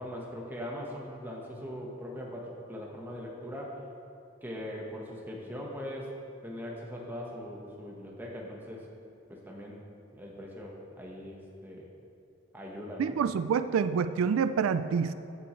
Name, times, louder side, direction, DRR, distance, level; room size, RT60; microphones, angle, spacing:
voice 1, 0.0-3.8 4.4-6.1 6.4-8.9 9.3-9.9 10.2-11.9 12.5-13.2, equal, 10° right, -2 dB, 1.2 m, -41 dB
voice 2, 13.0-15.1, right 6 dB, 90° right, 12 dB, 0.3 m, -27 dB
14.5 x 7.0 x 3.2 m, 2.8 s
head